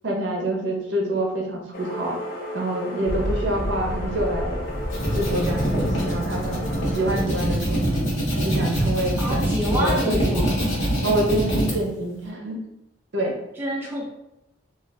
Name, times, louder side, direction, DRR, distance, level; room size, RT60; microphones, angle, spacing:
voice 1, 0.0-2.2 2.5-4.6 5.1-6.6 6.9-7.9 8.4-10.5 11.0-12.6 13.1-13.4, right 1 dB, 60° right, 0 dB, 0.6 m, -26 dB
sound 1, 1.7-7.2, left 1 dB, 50° left, 0.5 m, -34 dB
sound 2, 3.0-10.4, equal, 10° left, 0.8 m, -33 dB
sound 3, 4.7-11.7, equal, 80° left, 0.9 m, -24 dB
voice 2, 9.2-10.6 13.6-14.1, equal, 10° right, -4 dB, 0.3 m, -27 dB
2.4 x 2.3 x 3.2 m, 0.87 s
head